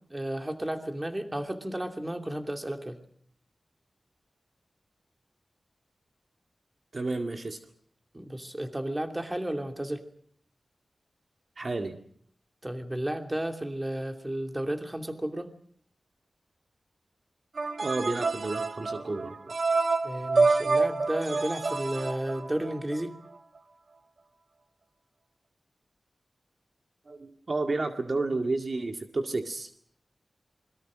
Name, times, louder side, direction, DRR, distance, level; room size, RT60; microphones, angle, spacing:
voice 1, 0.1-3.0 8.1-10.0 12.6-15.5 20.0-23.1, right 1 dB, 20° right, 5 dB, 2.8 m, -33 dB
voice 2, 6.9-7.6 11.6-12.0 17.8-19.5 27.1-29.7, right 3 dB, 50° right, 5 dB, 2.1 m, -31 dB
sound 1, 17.6-22.9, right 3 dB, 65° right, 1.9 m, -27 dB
27.5 x 22.0 x 6.4 m, 0.62 s
wide cardioid pair, 85°, 0 cm